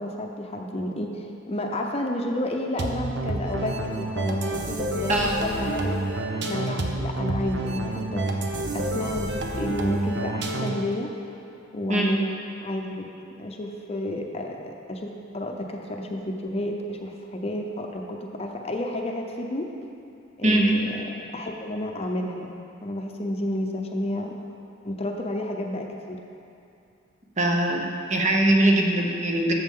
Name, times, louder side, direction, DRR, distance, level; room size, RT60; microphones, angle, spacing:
voice 1, 0.0-6.0 6.3-8.5 8.7-11.1 11.7-12.3 12.6-13.1 13.4-19.7 20.4-24.3 24.8-26.2, left 1 dB, 30° left, 2 dB, 0.7 m, -31 dB
sound 1, 2.8-10.9, right 2 dB, 65° right, 0.8 m, -29 dB
voice 2, 5.1-5.4 11.9-12.2 20.4-20.7 27.4-29.5, right 1 dB, 40° right, 0 dB, 1.0 m, -21 dB
13.0 x 7.3 x 3.8 m, 2.6 s
head